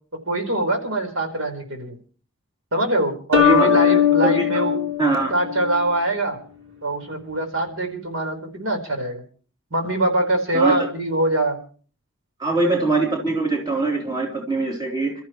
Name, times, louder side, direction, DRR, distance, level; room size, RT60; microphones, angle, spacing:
voice 1, 0.3-2.0 2.7-4.8 5.3-6.4 6.8-9.2 9.7-11.6, right 1 dB, 85° right, 4 dB, 4.5 m, -23 dB
sound 1, 3.3-6.0, left 9 dB, 70° right, 3.3 m, -20 dB
voice 2, 3.4-4.4 5.0-5.3 10.5-10.9 12.4-15.1, right 3 dB, 20° right, 0 dB, 3.4 m, -22 dB
29.0 x 14.0 x 3.1 m, 0.41 s
head